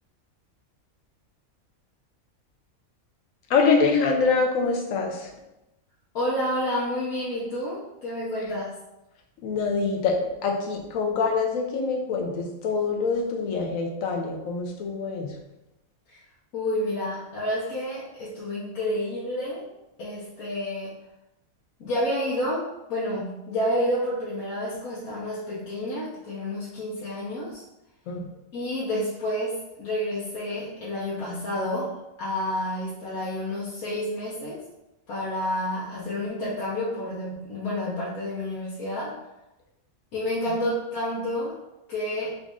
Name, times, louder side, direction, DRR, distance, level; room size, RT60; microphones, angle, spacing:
voice 1, 3.5-5.3 9.4-15.3 28.1-28.2, left 4 dB, 70° left, 2 dB, 1.1 m, -25 dB
voice 2, 6.1-8.8 16.1-16.2 16.5-19.7 20.0-20.9 21.8-27.6 28.5-34.6 35.1-39.2 40.1-41.6 41.9-42.4, left 1 dB, 85° left, -8 dB, 1.3 m, -29 dB
4.1 x 2.5 x 3.5 m, 0.93 s
omnidirectional pair, 1.5 m